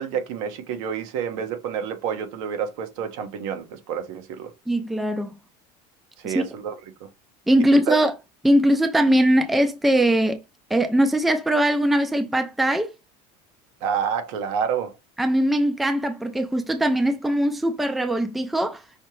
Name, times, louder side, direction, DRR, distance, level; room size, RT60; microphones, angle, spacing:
voice 1, 0.0-4.5 6.2-6.7 7.0-7.1 7.9-8.0 13.8-15.0, right 7 dB, 80° right, 1.1 m, -28 dB
voice 2, 4.7-5.4 6.2-6.4 7.5-8.1 8.4-10.4 10.7-12.9 15.2-18.8, right 1 dB, ahead, 0.4 m, -21 dB
5.5 x 2.9 x 3.1 m
cardioid pair, 160°, 17 cm